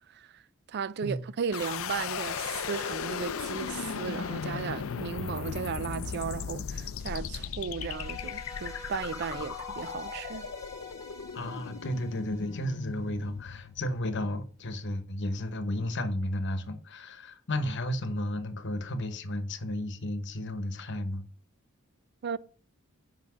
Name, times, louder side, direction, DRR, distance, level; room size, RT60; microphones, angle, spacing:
voice 1, 0.7-10.5 22.2-22.4, right 6 dB, 50° right, 0.4 m, -35 dB
sound 1, 1.5-14.5, left 6 dB, 70° left, 0.5 m, -37 dB
sound 2, 7.8-13.0, left 4 dB, 15° left, 1.4 m, -45 dB
voice 2, 11.3-21.2, left 1 dB, 55° left, 1.1 m, -33 dB
5.8 x 5.3 x 6.2 m
head